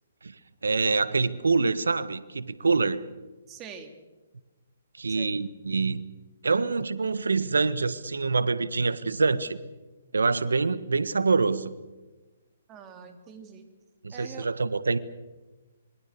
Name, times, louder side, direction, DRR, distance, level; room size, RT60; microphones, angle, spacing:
voice 1, 0.6-3.0 5.0-6.0 6.4-9.6 10.1-11.7 14.0-15.0, right 4 dB, 85° right, 14 dB, 1.5 m, -25 dB
voice 2, 3.5-3.9 5.1-5.3 12.7-13.7 14.1-14.5, right 7 dB, 25° right, 5 dB, 3.3 m, -44 dB
26.5 x 23.5 x 6.9 m, 1.2 s
hypercardioid pair, 135°, 0 cm